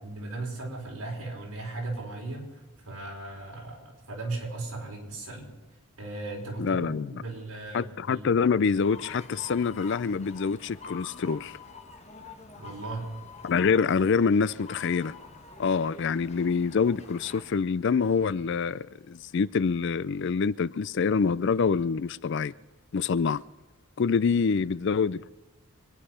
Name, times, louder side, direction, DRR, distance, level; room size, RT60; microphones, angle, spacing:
voice 1, 0.0-5.5 6.0-8.3 12.5-13.1, right 2 dB, 80° right, 4.9 m, -37 dB
voice 2, 6.6-7.1 7.7-11.6 13.4-15.1 15.6-22.5 22.9-23.4 24.0-25.3, left 5 dB, 55° left, 0.4 m, -26 dB
sound 1, 8.8-17.6, left 4 dB, 30° left, 1.7 m, -47 dB
24.5 x 10.0 x 5.6 m
head